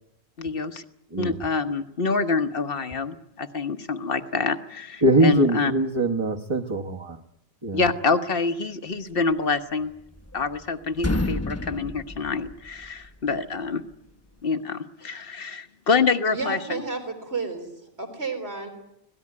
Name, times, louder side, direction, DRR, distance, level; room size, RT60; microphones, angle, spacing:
voice 1, 0.4-0.8 1.2-5.7 7.7-9.9 10.3-13.8 14.4-16.8, left 4 dB, 60° left, 9 dB, 1.5 m, -26 dB
voice 2, 5.0-7.2 7.6-7.8, right 2 dB, 25° right, 0 dB, 1.3 m, -22 dB
sound 1, 9.8-10.6 10.9-13.1, left 2 dB, 15° left, 0.9 m, -30 dB
voice 3, 16.3-17.7 18.0-18.7, right 4 dB, 80° right, 6 dB, 4.1 m, -31 dB
25.0 x 18.0 x 9.7 m, 0.84 s
omnidirectional pair, 1.1 m